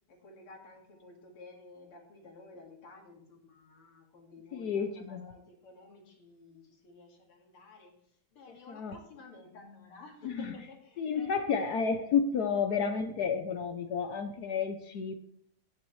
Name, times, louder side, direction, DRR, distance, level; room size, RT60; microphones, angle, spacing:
voice 1, 0.1-11.5, left 3 dB, 85° left, 3.1 m, -53 dB
voice 2, 4.5-5.3 8.7-9.0 10.2-10.5 11.0-15.1, left 6 dB, 60° left, 1.0 m, -31 dB
16.5 x 7.2 x 3.2 m
omnidirectional pair, 2.4 m